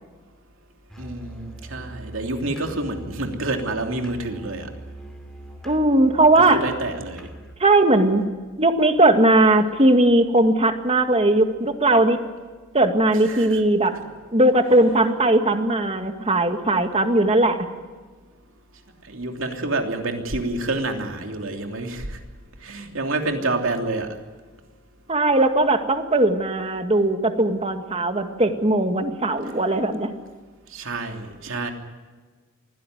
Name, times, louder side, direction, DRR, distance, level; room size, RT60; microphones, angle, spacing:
Musical instrument, 0.9-7.6, right 1 dB, 5° left, 2.6 m, -42 dB
voice 1, 1.0-4.7 6.3-7.3 13.3-13.6 19.0-22.2 22.6-24.2 30.7-31.7, right 2 dB, 65° right, 4 dB, 3.1 m, -28 dB
voice 2, 5.6-6.6 7.6-8.2 8.6-12.2 12.7-13.9 14.3-17.6 25.1-30.1, right 2 dB, 30° right, 6 dB, 2.0 m, -18 dB
24.0 x 16.5 x 9.5 m, 1.4 s
head